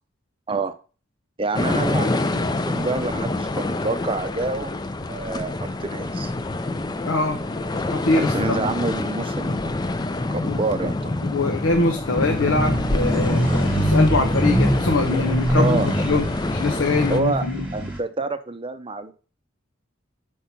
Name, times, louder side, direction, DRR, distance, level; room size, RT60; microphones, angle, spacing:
voice 1, 1.4-4.7 5.1-6.3 8.1-10.0 10.3-11.2 15.6-15.9 17.1-17.5 17.7-19.1, right 3 dB, 25° right, 10 dB, 0.6 m, -27 dB
sound 1, 1.5-17.2, left 2 dB, 20° left, 0.4 m, -26 dB
voice 2, 7.0-7.4 7.9-8.5 10.5-10.6 11.2-17.7, left 3 dB, 85° left, 3 dB, 0.8 m, -23 dB
sound 2, 12.1-18.0, equal, 5° right, 1.4 m, -23 dB
5.4 x 4.6 x 5.8 m, 0.37 s
head